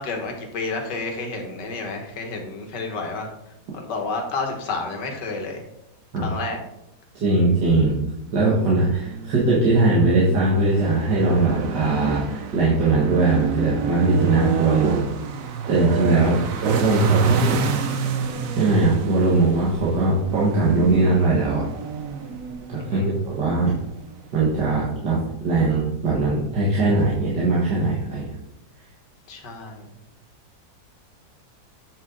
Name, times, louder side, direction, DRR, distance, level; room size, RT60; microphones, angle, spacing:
voice 1, 0.0-3.3 3.7-5.6 6.2-6.6 16.2-16.5 22.9-23.1 29.3-29.9, left 3 dB, 85° left, 2 dB, 2.0 m, -30 dB
voice 2, 7.2-8.0 8.3-15.1 15.7-17.6 18.6-21.7 22.7-23.7 24.3-28.3, right 2 dB, 80° right, -6 dB, 2.2 m, -20 dB
sound 1, 8.2-24.8, right 6 dB, 60° right, 1.0 m, -29 dB
8.5 x 6.2 x 3.9 m, 0.83 s
omnidirectional pair, 1.8 m